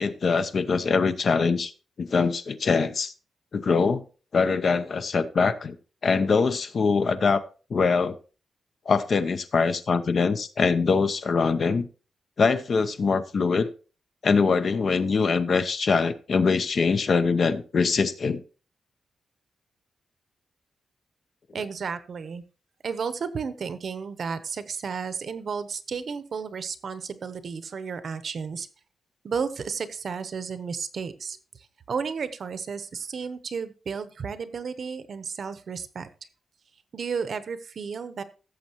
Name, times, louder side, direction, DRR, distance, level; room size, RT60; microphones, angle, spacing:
voice 1, 0.0-1.7 2.0-3.1 3.5-4.0 4.3-5.8 6.0-7.4 7.7-8.2 8.9-11.9 12.4-13.7 14.2-18.4, left 5 dB, 45° left, 12 dB, 0.6 m, -23 dB
voice 2, 21.5-22.4 22.8-28.7 29.2-36.1 36.9-38.2, right 6 dB, 50° right, 12 dB, 0.8 m, -33 dB
16.0 x 7.3 x 2.9 m, 0.35 s
wide cardioid pair, 180°, 0 cm